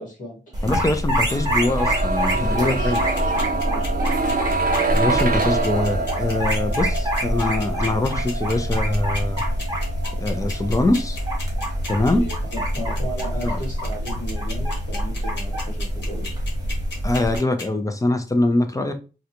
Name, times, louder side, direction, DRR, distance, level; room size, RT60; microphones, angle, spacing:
voice 1, 0.0-0.7 2.2-4.1 11.9-16.4, right 1 dB, 40° left, -2 dB, 1.9 m, -35 dB
sound 1, 0.5-17.4, equal, 20° right, 0.9 m, -25 dB
voice 2, 0.6-3.0 4.9-9.4 10.2-11.2 11.9-12.2 13.4-13.6 17.0-18.9, left 2 dB, 15° left, 7 dB, 0.4 m, -23 dB
sound 2, 1.3-13.1 13.4-13.5, right 3 dB, 50° right, 0.5 m, -27 dB
sound 3, 2.9-17.6, left 3 dB, 65° left, 1.2 m, -35 dB
3.7 x 2.2 x 2.9 m, 0.33 s
wide cardioid pair, 170°, 19 cm